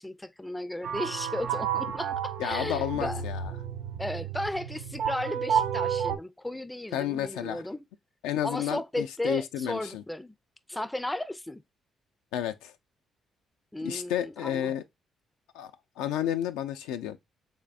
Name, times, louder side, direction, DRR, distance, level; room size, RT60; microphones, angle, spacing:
voice 1, 0.0-3.2 4.0-7.9 8.4-10.3 10.7-11.6 13.7-14.7, left 1 dB, 10° left, 0.4 m, -35 dB
sound 1, 0.8-6.2, right 8 dB, 70° right, 0.4 m, -31 dB
voice 2, 2.4-3.5 6.9-7.6 8.2-10.0 12.3-12.7 13.8-14.8 15.5-15.7 16.0-17.2, left 11 dB, 80° left, 0.3 m, -31 dB
3.5 x 3.2 x 2.4 m
hypercardioid pair, 50°, 0 cm